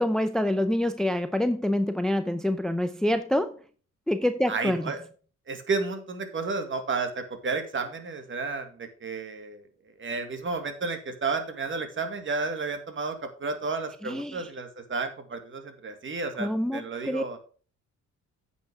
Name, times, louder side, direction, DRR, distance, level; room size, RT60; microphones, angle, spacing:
voice 1, 0.0-3.6 4.1-4.9 14.0-14.5 16.4-17.2, left 1 dB, ahead, 10 dB, 0.5 m, -26 dB
voice 2, 4.5-5.0 5.5-9.6 10.0-17.4, right 4 dB, 40° right, 7 dB, 1.9 m, -32 dB
8.9 x 5.7 x 4.8 m, 0.41 s
cardioid pair, 90°, 30 cm